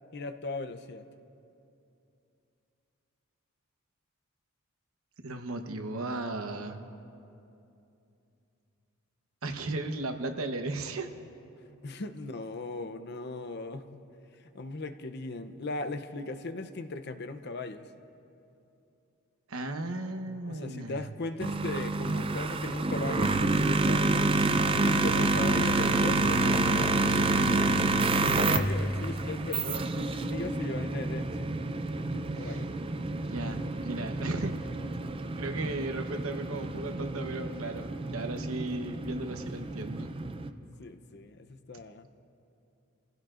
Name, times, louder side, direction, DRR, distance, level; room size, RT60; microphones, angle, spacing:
voice 1, 0.1-1.1 11.8-14.0 14.5-17.9 20.4-24.3 24.8-26.9 28.2-31.5 32.0-32.7 40.8-42.1, left 3 dB, 50° left, 8 dB, 0.6 m, -38 dB
voice 2, 5.2-6.8 9.4-11.1 19.5-21.1 32.4-32.7 33.1-34.5 35.4-40.1, right 2 dB, 70° right, 6 dB, 1.0 m, -36 dB
sound 1, 21.4-40.5, right 2 dB, 25° right, 0.4 m, -28 dB
29.0 x 16.0 x 2.5 m, 2.7 s
head